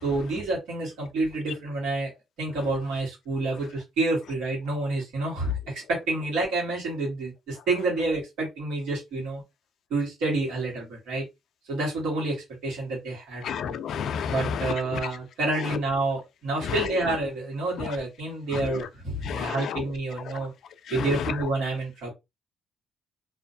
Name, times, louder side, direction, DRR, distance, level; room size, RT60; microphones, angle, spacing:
voice 1, 0.0-2.1 2.4-9.4 9.9-11.2 11.7-13.8 14.3-20.5 20.9-22.1, right 2 dB, 85° right, 1.3 m, -29 dB
voice 2, 13.4-15.1 16.6-16.8 17.8-17.9 18.5-18.7 19.2-19.8 20.9-21.1, left 7 dB, 70° left, 0.3 m, -31 dB
2.5 x 2.2 x 2.6 m
cardioid pair, 90°, 0 cm